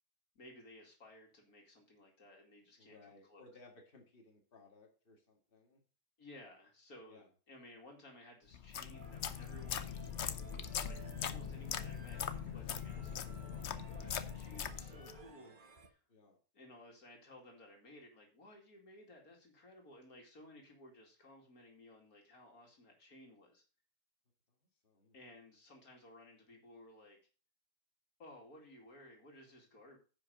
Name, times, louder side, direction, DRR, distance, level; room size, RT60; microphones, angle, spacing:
voice 1, 0.3-3.4 6.2-10.1 10.8-16.0 16.5-23.6 25.1-27.2 28.2-30.0, left 1 dB, 70° left, 1 dB, 2.8 m, -58 dB
voice 2, 2.8-5.8 7.1-7.3 16.1-16.4 24.8-25.1, left 3 dB, 35° left, 1 dB, 2.4 m, -61 dB
sound 1, 8.5-15.2, left 8 dB, 55° left, 0.9 m, -41 dB
sound 2, 8.9-15.9, right 3 dB, 35° right, 1.3 m, -56 dB
9.9 x 5.8 x 5.0 m, 0.36 s
omnidirectional pair, 1.6 m